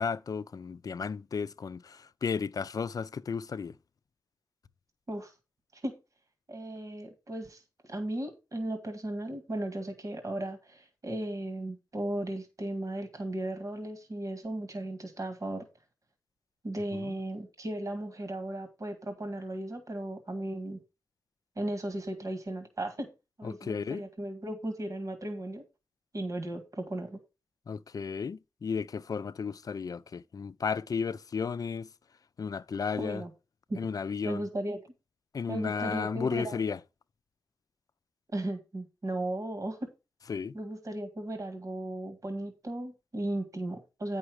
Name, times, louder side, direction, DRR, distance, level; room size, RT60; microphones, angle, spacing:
voice 1, 0.0-3.8 17.0-17.1 23.4-24.0 27.7-31.9 32.4-33.2 33.7-34.4 35.3-36.8 40.3-40.6, left 6 dB, 55° left, 0.4 m, -34 dB
voice 2, 6.5-15.7 16.6-20.8 21.6-23.1 23.4-25.6 26.1-27.2 33.0-33.3 33.7-33.8 34.2-34.8 35.5-36.6 38.3-39.9 40.5-44.2, right 1 dB, 50° right, 1.8 m, -36 dB
8.8 x 5.6 x 4.7 m
cardioid pair, 55°, 8 cm